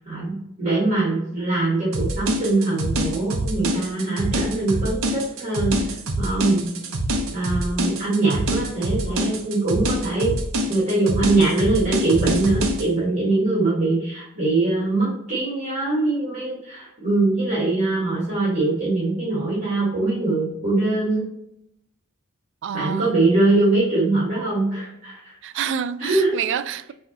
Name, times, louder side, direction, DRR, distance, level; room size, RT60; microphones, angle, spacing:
voice 1, 0.0-5.7 6.2-6.7 7.3-10.3 10.7-21.3 22.7-25.3 26.0-26.3, right 2 dB, 35° right, 1.8 m, -22 dB
sound 1, 1.9-12.8, right 1 dB, 80° right, 0.8 m, -25 dB
voice 2, 22.6-23.2 25.4-26.9, right 8 dB, 60° right, 0.3 m, -28 dB
5.8 x 3.1 x 2.9 m
head